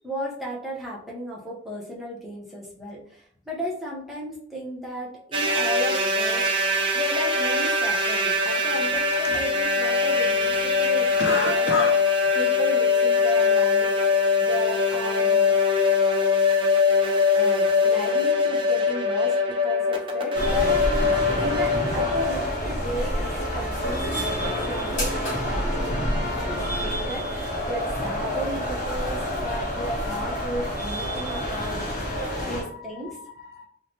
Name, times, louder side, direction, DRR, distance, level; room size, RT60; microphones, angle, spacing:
voice 1, 0.0-6.5 6.9-11.9 12.4-15.6 17.3-20.9 21.4-31.8 32.4-33.2, equal, ahead, -5 dB, 0.7 m, -35 dB
sound 1, 5.3-22.4, left 4 dB, 30° right, 0.4 m, -22 dB
voice 2, 11.2-12.0 31.4-33.7, left 2 dB, 60° left, 3 dB, 0.5 m, -32 dB
sound 2, 20.3-32.6, equal, 45° left, 1.3 m, -28 dB
3.1 x 2.1 x 2.8 m, 0.63 s
head